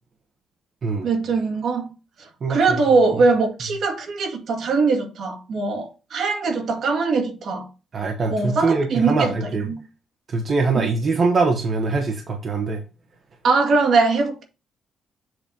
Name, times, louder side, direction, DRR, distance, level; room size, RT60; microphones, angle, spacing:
voice 1, 1.0-1.9 2.2-7.7 8.3-9.3 9.7-9.8 10.7-10.9 13.4-14.4, right 4 dB, 65° right, 2.0 m, -21 dB
voice 2, 2.4-2.8 7.9-9.7 10.3-12.8, right 4 dB, 45° right, 1.3 m, -23 dB
7.9 x 3.2 x 5.3 m
cardioid pair, 90°, 0 cm